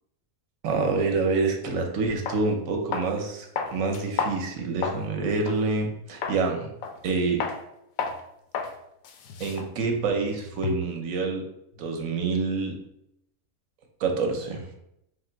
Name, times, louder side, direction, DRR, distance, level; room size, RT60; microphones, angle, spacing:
voice 1, 0.6-6.7 7.0-7.5 9.4-11.4 11.8-12.8 14.0-14.7, right 4 dB, 65° right, 3 dB, 1.1 m, -27 dB
sound 1, 1.7-1.8 2.3-2.4 2.9-3.2 3.6-5.1 5.5-5.6 6.2-6.4 6.8-7.1 7.4-7.6 8.0-8.2 8.5-8.7 9.0-11.0, left 5 dB, 70° left, 1.0 m, -32 dB
3.9 x 2.9 x 4.4 m, 0.80 s
omnidirectional pair, 1.6 m